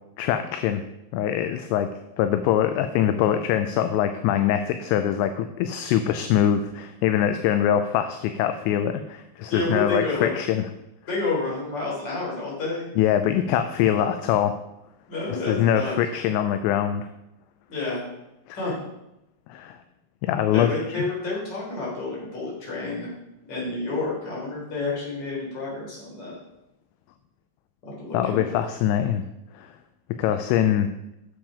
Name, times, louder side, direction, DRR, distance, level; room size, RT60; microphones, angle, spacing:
voice 1, 0.2-0.8 1.1-1.9 2.2-10.7 13.0-14.6 15.3-17.1 18.5-18.6 19.5-19.8 20.2-21.0 28.1-29.2 29.6-29.7 30.1-30.9, left 10 dB, 85° left, 8 dB, 2.7 m, -23 dB
voice 2, 9.5-10.3 11.1-12.9 15.1-16.0 17.7-18.0 18.5-18.8 20.5-23.1 23.5-26.4 27.8-28.6, left 3 dB, 25° left, -4 dB, 3.4 m, -29 dB
8.9 x 7.2 x 4.9 m, 0.89 s
omnidirectional pair, 5.5 m